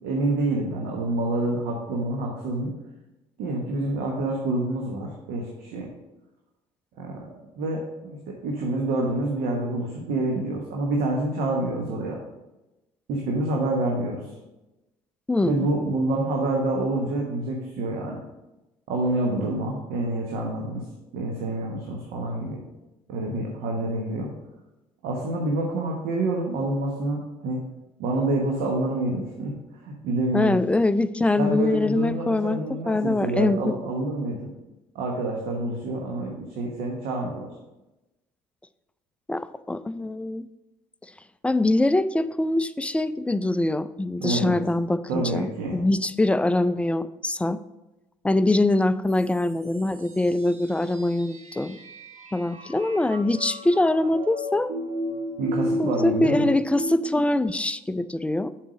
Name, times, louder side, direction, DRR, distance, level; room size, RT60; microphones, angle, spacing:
voice 1, 0.0-2.7 3.4-5.9 7.0-7.3 7.5-12.2 13.1-14.3 15.4-18.2 18.9-20.8 21.1-22.6 23.1-24.3 25.0-27.6 28.0-29.5 29.8-30.6 31.4-34.5 34.9-37.5 44.2-44.5 45.1-45.8 55.4-56.5, right 2 dB, 65° right, 0 dB, 1.2 m, -27 dB
voice 2, 15.3-15.7 30.3-33.8 39.3-40.5 41.4-47.6 48.2-51.8 52.3-54.7 55.8-58.5, left 2 dB, 5° left, 14 dB, 0.3 m, -23 dB
sound 1, 49.1-57.2, equal, 40° right, 1.4 m, -33 dB
7.4 x 4.8 x 4.9 m, 1.0 s
hypercardioid pair, 55°, 17 cm